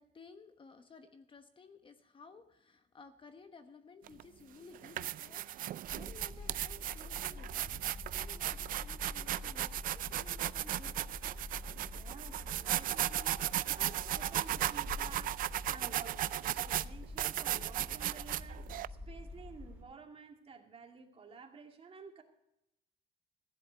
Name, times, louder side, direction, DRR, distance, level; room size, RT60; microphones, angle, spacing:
voice 1, 0.0-7.8 8.1-11.1, left 4 dB, 30° left, 8 dB, 1.1 m, -56 dB
sound 1, 4.1-4.2 4.7-18.9, right 13 dB, 55° right, 0.4 m, -36 dB
sound 2, 5.8-19.8, left 2 dB, 10° right, 4.6 m, -47 dB
voice 2, 11.9-22.2, right 5 dB, 35° right, 3 dB, 2.3 m, -52 dB
15.0 x 10.5 x 4.6 m, 0.85 s
cardioid pair, 110°, 17 cm